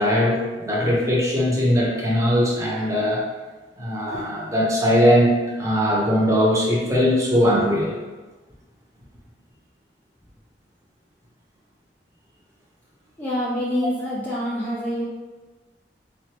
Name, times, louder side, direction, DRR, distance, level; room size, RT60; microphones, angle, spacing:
voice 1, 0.0-3.2 3.8-8.0, equal, 20° right, -4 dB, 0.8 m, -20 dB
voice 2, 13.2-15.0, equal, 10° left, -7 dB, 0.5 m, -26 dB
3.9 x 3.2 x 2.9 m, 1.2 s
head